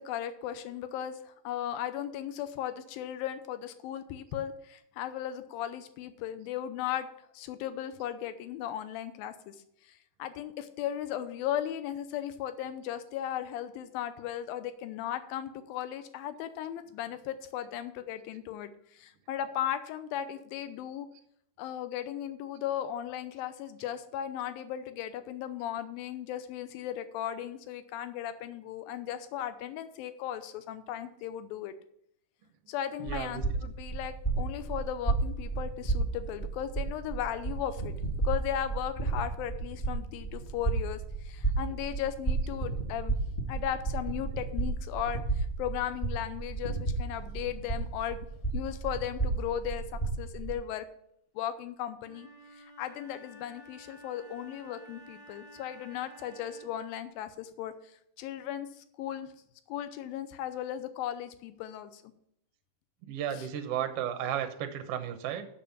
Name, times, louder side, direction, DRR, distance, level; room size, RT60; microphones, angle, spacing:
voice 1, 0.0-7.1 7.3-9.6 9.8-21.1 21.6-31.7 32.7-37.9 38.2-43.1 43.5-48.3 48.5-49.8 50.2-50.9 51.4-52.3 52.5-57.7 58.2-59.3 59.7-62.1 63.3-63.5, left 10 dB, 80° left, 11 dB, 2.6 m, -36 dB
voice 2, 33.0-33.4 63.0-65.5, right 10 dB, 80° right, 7 dB, 1.3 m, -34 dB
sound 1, 33.1-50.5, right 3 dB, 30° left, 0.8 m, -33 dB
Wind instrument woodwind instrument, 52.0-56.9, right 1 dB, 55° left, 2.1 m, -52 dB
7.3 x 6.9 x 7.2 m, 0.71 s
omnidirectional pair, 4.1 m